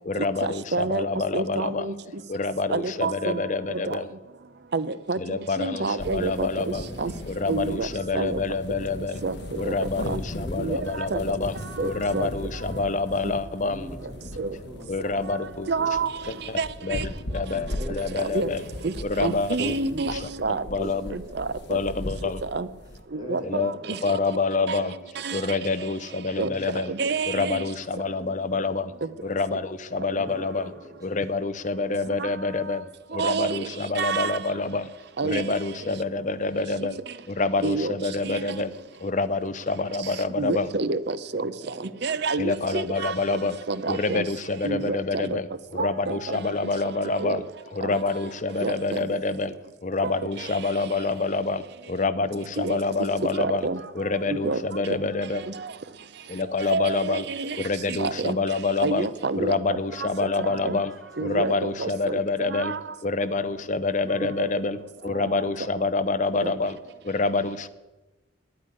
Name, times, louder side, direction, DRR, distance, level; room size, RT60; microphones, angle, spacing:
voice 1, 0.0-1.9 2.3-4.1 5.2-6.9 7.3-9.2 9.6-13.9 14.9-15.7 16.3-17.0 17.3-18.7 19.0-19.8 20.1-20.3 20.7-21.2 21.7-22.4 23.4-23.7 24.0-24.9 25.3-26.9 27.3-28.9 29.2-30.7 31.0-34.9 35.2-37.0 37.3-38.7 39.0-40.7 42.4-43.6 43.9-47.4 47.7-49.6 49.8-53.7 53.9-55.4 56.3-57.3 57.6-59.1 59.4-60.9 61.2-62.8 63.0-66.8 67.0-67.7, left 3 dB, 35° left, 12 dB, 0.6 m, -27 dB
voice 2, 0.7-1.0 1.3-1.9 2.7-3.4 3.9-4.0 4.7-5.2 5.6-6.5 7.0-7.1 7.5-7.9 8.1-8.4 9.2-9.3 9.6-10.2 10.6-10.8 11.1-11.2 11.8-12.3 14.4-14.5 15.7-16.1 16.6-17.0 18.3-18.5 18.8-18.9 19.2-20.1 20.4-20.6 21.4-21.5 22.5-22.7 23.3-23.6 25.2-25.4 26.4-26.5 27.0-27.6 33.2-33.6 34.0-34.3 35.2-35.4 37.6-37.9 40.4-41.4 42.0-43.1 43.7-44.2 44.6-45.3 45.8-46.2 47.2-47.4 48.6-48.7 52.6-52.8 53.4-53.8 54.4-54.6 56.7-57.6 58.0-58.4 58.8-59.6 60.6-60.8 61.2-62.2 62.6-62.8 66.4-66.5, right 4 dB, 55° right, 14 dB, 0.6 m, -27 dB
sound 1, 6.0-23.0, left 1 dB, 55° left, 1.3 m, -38 dB
voice 3, 6.8-8.0 8.3-8.4 10.3-11.7 13.6-15.5 15.8-15.9 16.2-16.6 17.7-19.3 19.9-21.9 22.4-22.5 23.1-24.5 26.4-27.3 30.1-31.2 35.7-36.3 41.3-42.3 43.7-44.1 52.3-52.7 60.5-60.9 64.0-64.7 65.0-65.4, equal, 20° right, -2 dB, 3.6 m, -44 dB
10.0 x 8.7 x 9.8 m, 1.1 s
head